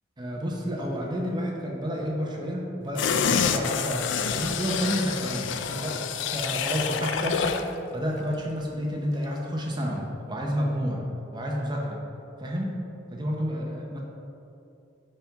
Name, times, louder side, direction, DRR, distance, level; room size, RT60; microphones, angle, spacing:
voice 1, 0.2-11.0 11.3-12.0 12.4-12.8 13.1-14.0, equal, 20° right, -1 dB, 0.7 m, -30 dB
sound 1, 3.0-7.7 8.1-8.2, left 6 dB, 60° left, 0.4 m, -28 dB
5.7 x 4.3 x 5.7 m, 2.8 s
head